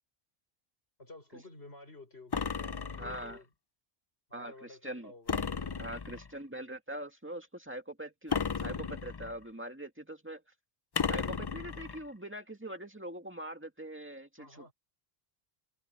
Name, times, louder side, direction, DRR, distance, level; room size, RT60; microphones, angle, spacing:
voice 1, 1.0-3.5 4.3-5.5 14.4-14.7, left 2 dB, 85° left, 6.1 m, -52 dB
sound 1, 2.3-3.4 5.3-6.3 8.3-9.4 11.0-12.0, left 5 dB, 35° left, 0.4 m, -34 dB
voice 2, 3.0-3.4 4.3-5.1 5.8-10.4 11.1-14.7, right 1 dB, 10° right, 2.2 m, -43 dB
omnidirectional pair, 1.0 m